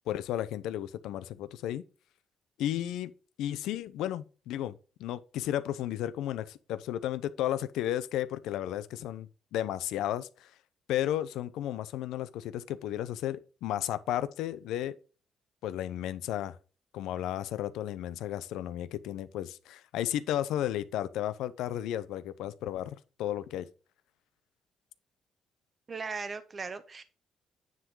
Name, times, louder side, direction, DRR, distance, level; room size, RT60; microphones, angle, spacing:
voice 1, 0.0-1.8 2.6-3.1 3.4-10.5 10.9-15.0 15.6-16.6 16.9-23.7, left 12 dB, 90° left, 0.6 m, -33 dB
voice 2, 25.9-27.0, right 4 dB, 35° right, 0.9 m, -38 dB
9.6 x 3.8 x 4.6 m
cardioid pair, 90°, 0 cm